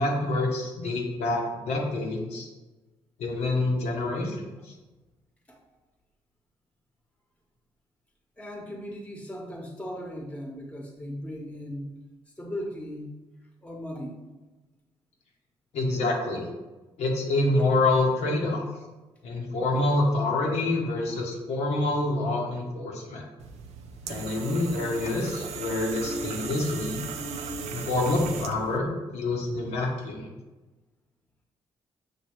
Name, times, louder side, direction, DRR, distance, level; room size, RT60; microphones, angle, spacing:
voice 1, 0.0-2.5 3.2-4.4 15.7-16.5 17.0-18.6 19.2-23.2 24.1-27.0 27.7-30.3, left 2 dB, 85° left, -2 dB, 0.9 m, -27 dB
voice 2, 8.4-11.9 12.4-13.1 13.6-14.2, equal, 10° left, 0 dB, 1.0 m, -37 dB
sound 1, 23.4-28.8, right 5 dB, 80° right, 0.4 m, -37 dB
6.2 x 2.7 x 3.0 m, 1.2 s
cardioid pair, 75°, 11 cm